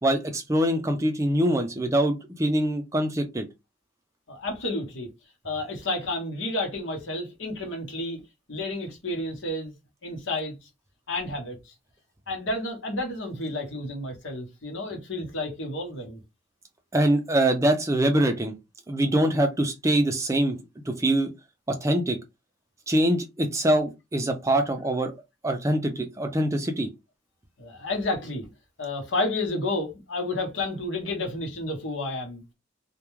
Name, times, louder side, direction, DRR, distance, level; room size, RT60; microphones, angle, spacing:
voice 1, 0.0-3.5 16.9-18.5 18.9-20.6 20.9-21.3 21.7-22.2 22.9-25.1 25.4-26.9, right 1 dB, 15° right, 0.4 m, -24 dB
voice 2, 4.3-5.1 5.4-8.2 8.5-9.7 10.0-10.5 11.1-11.7 12.3-16.2 27.6-28.5 28.8-32.4, left 2 dB, 75° left, 0.9 m, -31 dB
2.3 x 2.1 x 3.0 m
head